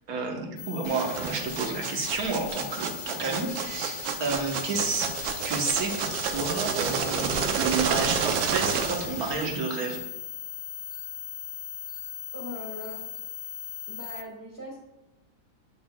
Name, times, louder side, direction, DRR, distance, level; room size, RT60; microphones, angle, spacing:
voice 1, 0.1-5.1 5.4-10.0, right 4 dB, 55° right, 2 dB, 1.5 m, -30 dB
sound 1, 0.6-14.2, left 10 dB, 80° left, 1.5 m, -39 dB
sound 2, 0.8-9.6, right 7 dB, 85° right, 1.4 m, -30 dB
voice 2, 12.3-13.1 13.9-14.8, left 1 dB, 15° right, -5 dB, 1.7 m, -40 dB
8.7 x 6.8 x 2.3 m, 0.97 s
omnidirectional pair, 2.1 m